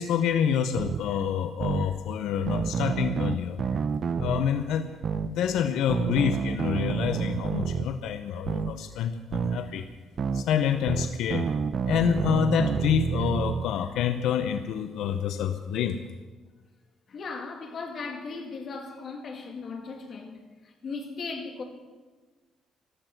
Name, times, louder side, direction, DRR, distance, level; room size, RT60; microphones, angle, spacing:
voice 1, 0.0-3.8 4.2-4.9 5.2-9.9 10.3-11.5 11.8-16.0, left 8 dB, 85° left, 0.8 m, -27 dB
sound 1, 0.8-1.0 1.6-1.9 2.5-4.4 5.0-5.3 5.9-7.9 8.5-8.7 9.3-9.6 10.2-10.4 10.9-13.7, right 6 dB, 40° right, 0.6 m, -28 dB
voice 2, 17.1-21.6, left 4 dB, 40° left, 2.4 m, -37 dB
14.5 x 13.0 x 6.0 m
cardioid pair, 165°, 0 cm